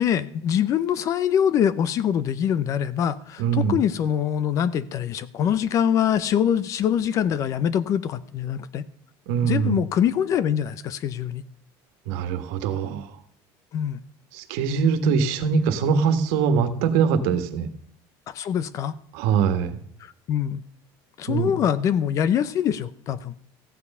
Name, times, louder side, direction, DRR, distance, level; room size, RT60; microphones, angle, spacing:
voice 1, 0.0-8.9 9.4-11.4 13.7-14.0 18.3-18.9 20.0-20.6 21.2-23.3, left 9 dB, 35° left, 0.6 m, -24 dB
voice 2, 3.4-3.8 9.3-9.8 12.1-13.1 14.3-17.7 19.1-19.8 21.3-21.5, right 6 dB, 70° right, 1.7 m, -22 dB
14.5 x 9.8 x 5.5 m
cardioid pair, 180°, 10 cm